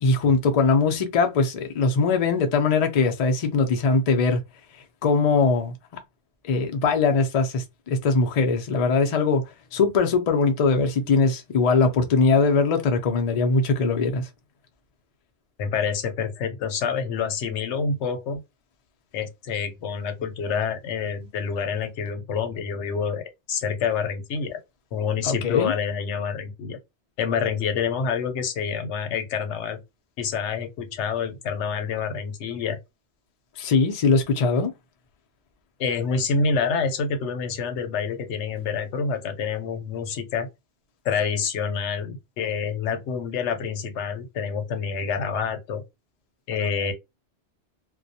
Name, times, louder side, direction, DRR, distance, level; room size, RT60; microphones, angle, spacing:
voice 1, 0.0-4.4 5.0-6.0 6.4-9.4 9.7-14.3 25.2-25.7 33.6-34.7, left 4 dB, 50° left, 0.5 m, -21 dB
voice 2, 15.6-18.4 19.1-23.2 23.5-24.6 24.9-26.8 27.2-29.8 30.2-32.8 35.8-40.5 41.0-45.8 46.5-46.9, left 6 dB, 85° left, 0.9 m, -27 dB
2.3 x 2.1 x 2.6 m
omnidirectional pair, 1.2 m